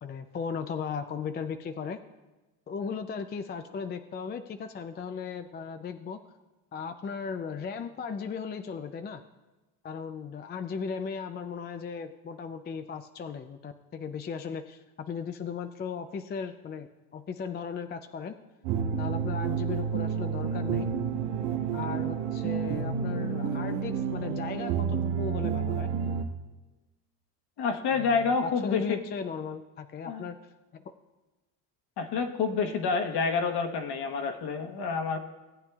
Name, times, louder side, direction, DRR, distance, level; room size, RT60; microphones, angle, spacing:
voice 1, 0.0-2.0 2.7-6.2 6.7-9.2 9.8-16.9 17.1-18.4 19.0-20.8 21.7-25.9 27.9-30.4 30.7-30.8, left 6 dB, 25° left, 8 dB, 0.4 m, -36 dB
sound 1, 18.6-26.2, right 7 dB, 85° right, 1.2 m, -30 dB
voice 2, 27.6-29.0 30.1-30.3 32.0-35.2, left 5 dB, 55° left, 5 dB, 1.3 m, -28 dB
17.5 x 8.6 x 2.4 m, 1.1 s
cardioid pair, 110°, 48 cm